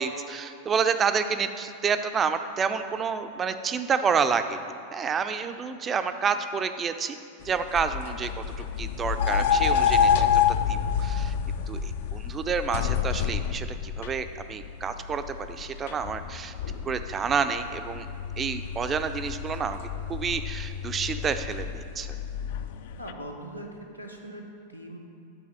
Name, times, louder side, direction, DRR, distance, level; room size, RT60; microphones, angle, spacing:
voice 1, 0.0-4.6 4.9-7.2 7.4-8.3 8.6-10.3 10.7-11.3 11.7-16.5 16.9-18.1 18.4-19.8 20.1-22.1, right 6 dB, 25° right, 9 dB, 0.4 m, -29 dB
sound 1, 7.4-23.1, left 8 dB, 55° left, 0.3 m, -28 dB
voice 2, 23.0-25.0, right 1 dB, 85° left, 1 dB, 0.8 m, -41 dB
8.8 x 4.0 x 5.6 m, 2.5 s
figure-of-eight pair, 90°, 0 cm